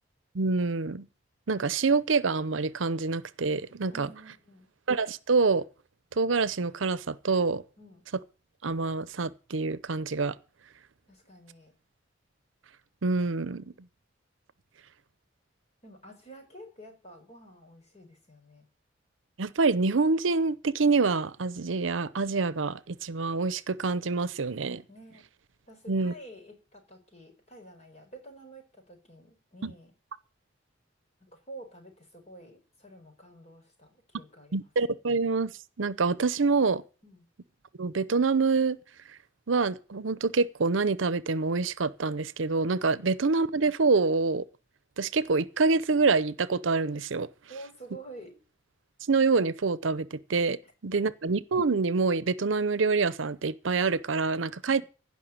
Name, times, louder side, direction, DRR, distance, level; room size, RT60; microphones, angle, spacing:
voice 1, 0.3-1.1 1.5-4.1 4.9-5.6 6.2-7.6 8.6-10.4 13.0-13.6 19.4-24.8 25.9-26.1 29.6-29.7 34.5-35.5 35.8-36.8 37.8-38.8 39.5-44.4 45.0-47.3 49.1-54.8, right 4 dB, 80° right, 0.7 m, -26 dB
voice 2, 3.9-4.7 7.8-8.0 11.1-11.7 15.8-18.7 24.9-25.3 25.7-29.9 31.2-34.7 37.0-37.3 47.5-48.4 50.6-50.7 54.7-54.8, right 1 dB, 35° left, 4.7 m, -49 dB
16.0 x 5.8 x 8.8 m
head